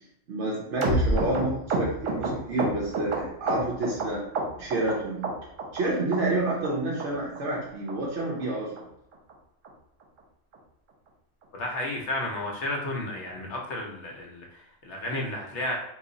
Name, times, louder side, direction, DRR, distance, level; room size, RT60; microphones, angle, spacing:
voice 1, 0.0-4.2 4.6-5.2 5.7-8.7, right 2 dB, 65° right, -4 dB, 1.0 m, -29 dB
sound 1, 0.8-4.1 4.3-4.9 5.2-5.8 6.1-6.2 6.5-6.7 7.0-7.1 7.4-7.6 7.9-8.0 8.2-8.4 8.8-8.9 9.1-9.3 9.6-9.7 10.0-10.2 10.5-10.6, right 2 dB, 90° right, 1.1 m, -28 dB
voice 2, 11.5-15.8, left 1 dB, 70° left, 0 dB, 1.0 m, -32 dB
3.1 x 2.3 x 3.8 m, 0.79 s
omnidirectional pair, 1.3 m